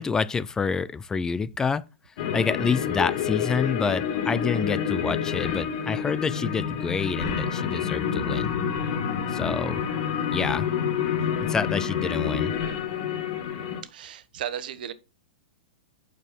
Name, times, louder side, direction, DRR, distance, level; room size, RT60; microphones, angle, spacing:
voice 1, 0.0-1.8 2.3-8.6 9.3-9.8 10.3-10.7 11.5-12.5, left 5 dB, 10° left, 0.4 m, -27 dB
sound 1, 2.2-13.8, left 7 dB, 55° left, 2.3 m, -28 dB
voice 2, 13.9-14.9, right 9 dB, 70° right, 1.2 m, -35 dB
8.4 x 6.9 x 4.4 m
hypercardioid pair, 140°, 5 cm